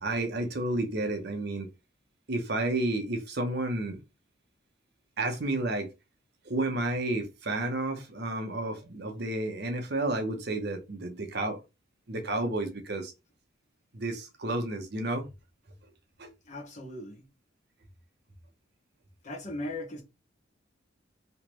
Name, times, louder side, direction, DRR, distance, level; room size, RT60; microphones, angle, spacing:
voice 1, 0.0-1.7 2.3-4.0 5.2-5.9 6.4-11.6 12.1-13.1 13.9-15.3 16.2-16.3, right 2 dB, 55° right, 0.8 m, -31 dB
voice 2, 16.4-17.3 19.2-20.0, left 1 dB, 35° left, 1.0 m, -38 dB
3.3 x 3.0 x 3.0 m
head